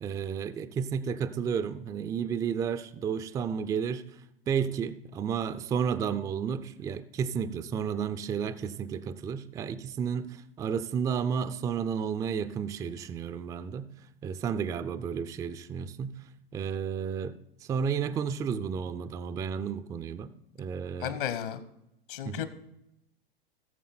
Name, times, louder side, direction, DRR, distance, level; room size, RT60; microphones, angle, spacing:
voice 1, 0.0-4.0 4.5-13.9 14.2-16.2 16.5-20.3 20.6-21.2 22.3-22.4, right 7 dB, 10° right, 0.3 m, -32 dB
voice 2, 21.0-21.6 22.1-22.5, left 11 dB, 60° left, 1.2 m, -33 dB
17.0 x 7.1 x 4.3 m
hypercardioid pair, 105°, 29 cm